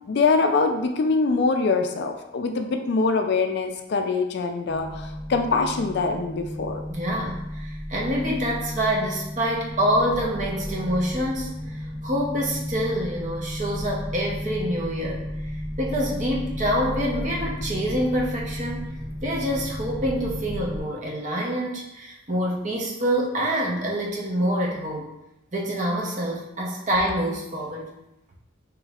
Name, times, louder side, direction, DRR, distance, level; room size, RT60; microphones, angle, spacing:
voice 1, 0.1-6.8, left 4 dB, 50° left, 5 dB, 0.3 m, -23 dB
sound 1, 4.7-20.8, equal, 5° left, 0.6 m, -33 dB
voice 2, 6.9-11.5 12.0-15.3 15.8-18.9 19.2-25.1 25.5-27.9, equal, 35° right, -2 dB, 0.7 m, -26 dB
5.0 x 3.1 x 2.4 m, 0.91 s
head